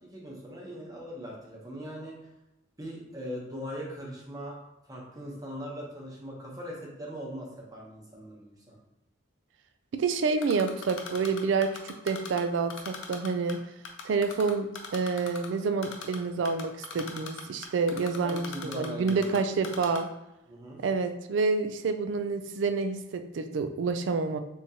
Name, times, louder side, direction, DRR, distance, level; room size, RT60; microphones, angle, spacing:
voice 1, 0.0-2.3 2.8-4.6 4.9-8.8 18.2-19.3 19.7-19.9 20.5-20.8, equal, 20° right, -3 dB, 0.8 m, -40 dB
voice 2, 9.9-13.6 14.0-20.1 20.8-24.4, right 4 dB, 70° right, 8 dB, 0.3 m, -28 dB
Typing, 10.4-12.4 12.7-13.5 13.8-15.5 15.8-16.2 16.4-19.4 19.6-20.0, left 6 dB, 80° left, 0.5 m, -39 dB
3.7 x 2.9 x 2.7 m, 0.90 s
head